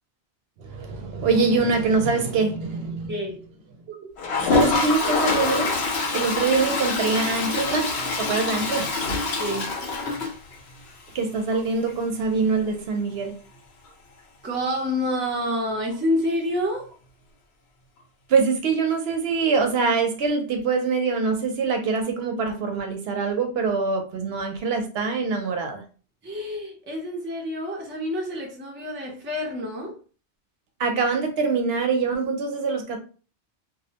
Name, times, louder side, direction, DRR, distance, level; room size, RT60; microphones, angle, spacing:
voice 1, 0.6-3.1 3.9-4.0 4.5-5.8 6.1-7.9 8.2-8.9 11.1-13.3 18.3-25.8 30.8-33.0, right 4 dB, 70° right, 0.8 m, -24 dB
voice 2, 3.1-3.5 9.4-9.7 14.4-16.9 26.2-30.0, left 1 dB, 15° right, 0.4 m, -28 dB
Toilet flush, 4.2-10.9 11.2-11.3 11.5-11.6 11.9-12.0 14.5-14.6 15.9-16.0, left 3 dB, 75° left, 0.9 m, -25 dB
2.5 x 2.0 x 2.7 m
omnidirectional pair, 1.1 m